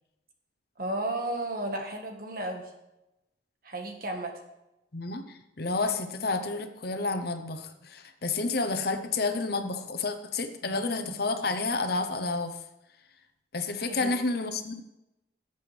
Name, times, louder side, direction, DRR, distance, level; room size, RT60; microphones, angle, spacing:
voice 1, 0.8-2.7 3.6-4.3 13.8-14.1, right 1 dB, 50° right, 3 dB, 1.5 m, -33 dB
voice 2, 4.9-12.6 13.5-14.8, left 3 dB, 55° left, 7 dB, 0.9 m, -30 dB
17.0 x 7.0 x 3.4 m, 0.92 s
head